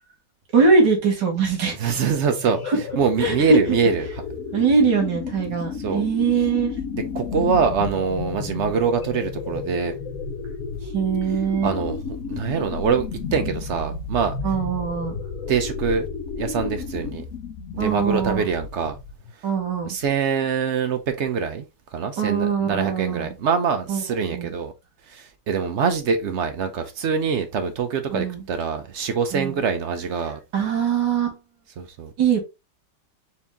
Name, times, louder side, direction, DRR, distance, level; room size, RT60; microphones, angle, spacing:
voice 1, 0.5-2.0 2.7-2.8 3.2-3.6 4.5-6.7 10.9-11.7 14.4-15.2 17.8-18.5 19.4-20.0 22.2-23.3 23.9-24.0 24.3-24.5 28.1-28.4 29.3-29.6 30.5-31.4 32.2-32.4, right 5 dB, 90° right, 1.9 m, -22 dB
sound 1, 1.8-19.3, left 5 dB, 65° left, 0.9 m, -32 dB
voice 2, 1.8-2.6 3.0-4.0 5.8-6.1 7.1-9.9 11.6-12.0 12.3-14.3 15.5-16.1 16.4-17.2 17.7-19.0 19.8-21.6 21.9-24.7 25.1-30.4 31.8-32.1, right 6 dB, 65° right, 0.7 m, -24 dB
4.3 x 2.8 x 3.4 m
omnidirectional pair, 1.8 m